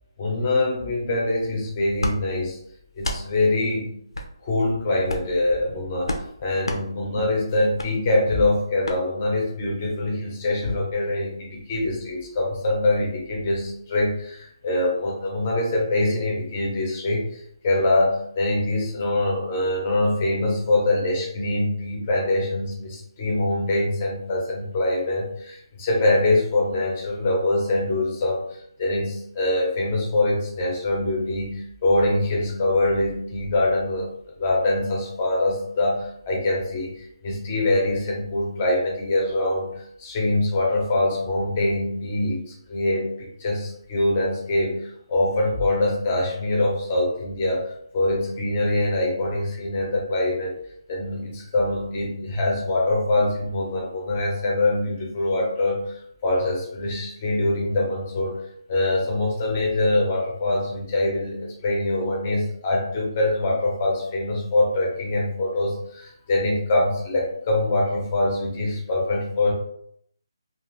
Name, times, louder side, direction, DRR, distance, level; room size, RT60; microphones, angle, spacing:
voice 1, 0.2-2.6 2.9-4.0 4.4-6.1 6.4-34.1 34.4-50.5 50.9-58.4 58.7-69.5, left 2 dB, 20° left, -2 dB, 0.6 m, -24 dB
sound 1, 2.0-2.2 3.0-3.2 4.1-4.3 5.0-5.3 6.0-6.3 6.6-6.8 7.8-7.9 8.8-9.0, left 1 dB, 75° left, 0.5 m, -29 dB
2.4 x 2.3 x 3.1 m, 0.69 s
hypercardioid pair, 175°, 3 cm